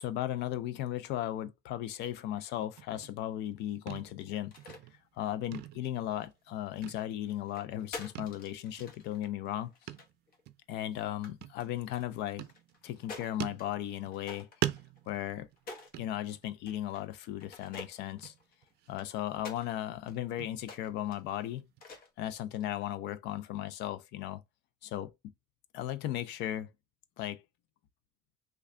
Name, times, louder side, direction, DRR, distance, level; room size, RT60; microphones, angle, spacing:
voice 1, 0.0-4.5 5.1-9.7 10.7-12.5 12.8-14.5 15.1-15.5 16.0-18.3 18.9-21.7 22.2-24.4 24.8-25.1 25.7-26.7 27.2-27.4, left 12 dB, 85° left, 0.5 m, -36 dB
sound 1, 2.8-3.6 3.9-4.3 4.6-5.2 5.5-6.5 6.8-7.5 8.1-8.4 8.8-8.9 9.9-10.2 10.5-10.6 11.4-12.0 12.4-13.0 13.4-14.3 14.6-16.6 17.0-17.3 17.6-17.7 18.2-18.9 19.3-21.8, right 14 dB, 75° right, 0.4 m, -42 dB
sound 2, 4.5-4.8 5.2-6.2 6.8-10.4 10.8-11.3 11.6-13.7 14.1-16.0 16.7-17.1 17.4-19.7 20.1-20.2 20.6-21.2 21.8-22.2 22.5-22.8, left 3 dB, 60° left, 1.0 m, -49 dB
3.3 x 2.3 x 3.6 m
cardioid pair, 110°, 17 cm